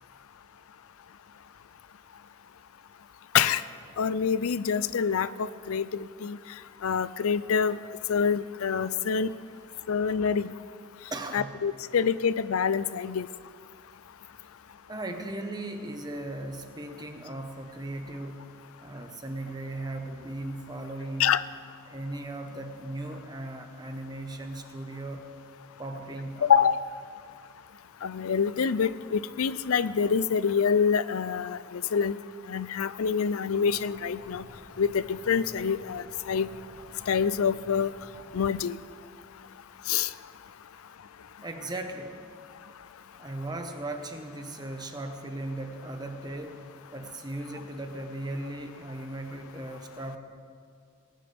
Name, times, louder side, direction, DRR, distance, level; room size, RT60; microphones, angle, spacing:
voice 1, 4.0-6.4 6.8-7.8 8.1-9.3 9.9-10.5 11.3-13.3 21.2-21.4 26.4-26.8 28.0-32.2 32.5-34.4 34.8-36.5 37.1-37.9 38.3-38.8 39.9-40.1, left 6 dB, 90° left, 16 dB, 0.5 m, -26 dB
voice 2, 11.1-11.6 14.9-18.4 18.8-21.4 21.9-25.3 25.8-26.5 41.4-42.2 43.2-46.6 46.9-50.2, right 2 dB, 20° right, 5 dB, 1.2 m, -37 dB
sound 1, 33.6-38.6, equal, 45° right, 3.1 m, -52 dB
19.5 x 18.5 x 3.5 m, 2.2 s
head